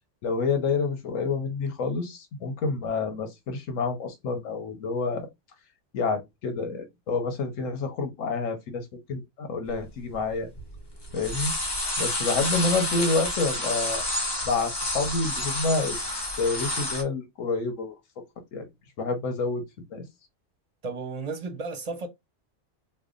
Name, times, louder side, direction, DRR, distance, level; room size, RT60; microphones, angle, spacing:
voice 1, 0.2-5.3 5.9-10.5 11.1-11.5 12.0-14.0 14.4-16.0 16.4-17.9 18.5-18.7 19.0-19.6 19.9-20.0, left 4 dB, 90° left, 1.2 m, -28 dB
sound 1, 9.8-9.9 10.1-10.8 11.0-17.0, left 1 dB, 20° left, 0.9 m, -29 dB
voice 2, 20.8-22.1, right 3 dB, 40° right, 0.6 m, -33 dB
3.4 x 2.0 x 3.7 m
omnidirectional pair, 1.3 m